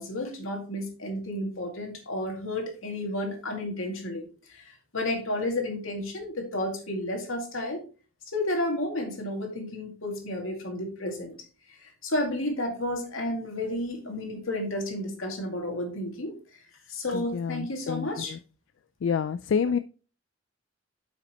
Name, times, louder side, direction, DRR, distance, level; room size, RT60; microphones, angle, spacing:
voice 1, 0.0-7.8 8.3-11.3 11.8-16.3 16.9-18.3 19.7-19.8, left 1 dB, 90° left, 2 dB, 2.2 m, -32 dB
voice 2, 17.1-18.4 19.0-19.8, left 6 dB, 65° left, 13 dB, 0.3 m, -28 dB
9.3 x 5.8 x 3.0 m, 0.36 s
head